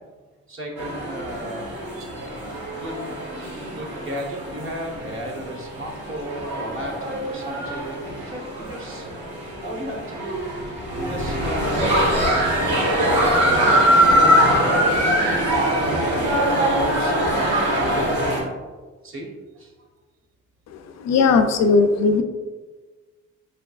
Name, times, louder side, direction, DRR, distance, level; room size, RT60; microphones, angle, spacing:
voice 1, 0.5-1.7 2.7-2.9 3.7-9.1 9.6-10.5 11.0-11.9 13.0-18.2 19.0-19.7, right 1 dB, 45° right, -1 dB, 1.0 m, -34 dB
sound 1, 0.8-18.4, equal, 75° right, 1.2 m, -22 dB
voice 2, 20.7-22.2, left 4 dB, 60° left, 7 dB, 0.4 m, -18 dB
4.5 x 3.4 x 2.3 m, 1.3 s
cardioid pair, 90°, 30 cm